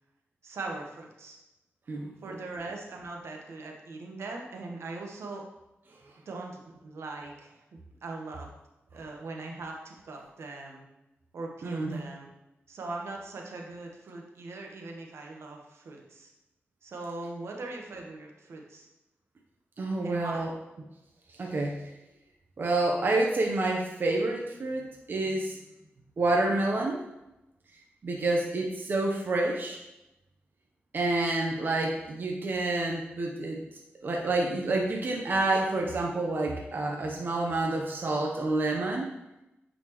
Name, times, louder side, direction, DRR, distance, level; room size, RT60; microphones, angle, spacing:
voice 1, 0.4-1.4 2.2-5.4 6.2-7.6 8.0-8.5 8.9-10.9 11.3-12.3 12.7-16.3 16.8-18.9 20.0-20.4, right 3 dB, 80° right, 1 dB, 1.0 m, -40 dB
voice 2, 11.6-12.0 19.8-20.5 21.4-21.8 22.6-25.6 26.2-27.0 28.0-29.8 30.9-33.6 34.0-39.1, right 2 dB, 50° right, 0 dB, 0.7 m, -28 dB
9.0 x 4.2 x 3.0 m, 0.96 s
wide cardioid pair, 110°, 4 cm